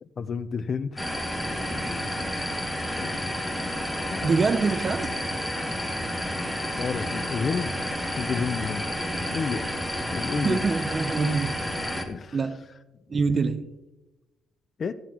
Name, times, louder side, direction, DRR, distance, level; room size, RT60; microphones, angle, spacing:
voice 1, 0.0-1.1 1.7-2.1 2.9-3.3 4.1-4.3 6.7-7.7 8.1-8.9 9.3-9.6 10.0-10.6 12.1-12.4 14.8-14.9, left 5 dB, 45° left, 0.5 m, -31 dB
sound 1, 1.0-12.1, equal, 5° left, 1.3 m, -30 dB
voice 2, 4.2-5.1 9.0-9.2 10.4-11.5 12.3-12.6 13.1-13.6, right 4 dB, 40° right, 0.6 m, -25 dB
13.5 x 9.2 x 2.9 m
cardioid pair, 90°, 0 cm